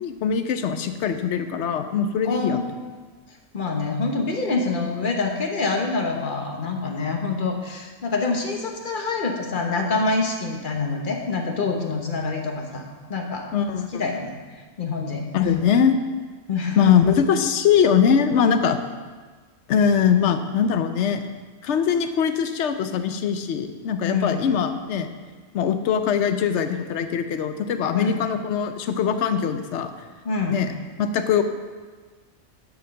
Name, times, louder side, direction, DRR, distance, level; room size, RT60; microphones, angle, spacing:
voice 1, 0.0-2.6 13.5-14.1 15.3-16.0 16.8-18.8 19.7-21.2 21.6-25.1 25.5-29.9 30.5-31.4, left 7 dB, 60° left, 9 dB, 0.9 m, -22 dB
voice 2, 2.2-2.6 3.5-12.8 13.1-13.5 13.9-14.4 14.8-15.2 16.5-16.9 24.0-24.5 27.9-28.2 30.2-30.6, left 3 dB, 40° left, 2 dB, 1.1 m, -26 dB
10.0 x 4.9 x 6.3 m, 1.4 s
omnidirectional pair, 1.5 m